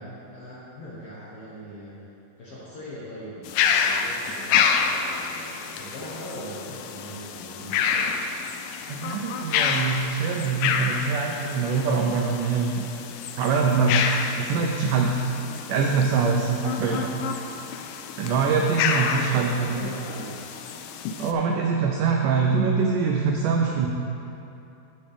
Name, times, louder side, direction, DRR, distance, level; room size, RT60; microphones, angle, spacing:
voice 1, 0.0-2.0 2.4-8.2 16.8-17.1 18.7-20.4, equal, 60° left, -8 dB, 1.6 m, -40 dB
sound 1, 3.5-21.3, left 6 dB, 80° left, 2.0 m, -28 dB
voice 2, 8.9-12.8 13.4-14.1 14.4-15.2 15.7-17.0 18.2-19.9 21.2-23.9, right 5 dB, 85° right, 1 dB, 1.8 m, -24 dB
14.5 x 5.3 x 3.5 m, 2.9 s
omnidirectional pair, 4.3 m